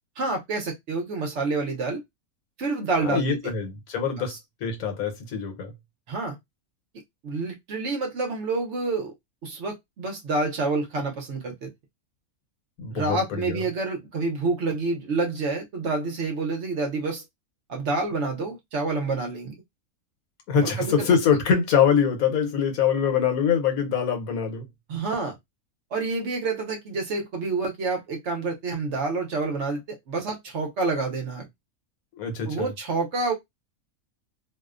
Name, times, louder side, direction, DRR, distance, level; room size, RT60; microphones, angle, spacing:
voice 1, 0.2-2.0 2.6-3.5 4.3-4.4 6.1-6.4 7.2-9.1 9.4-11.7 12.9-17.2 17.7-19.5 20.6-21.1 24.9-25.4 25.9-31.5 32.4-33.3, right 3 dB, 60° right, 0.9 m, -28 dB
voice 2, 3.0-4.3 4.6-5.7 12.8-13.6 20.5-24.7 32.1-32.7, left 7 dB, 80° left, 1.2 m, -24 dB
2.7 x 2.0 x 2.4 m
omnidirectional pair, 1.5 m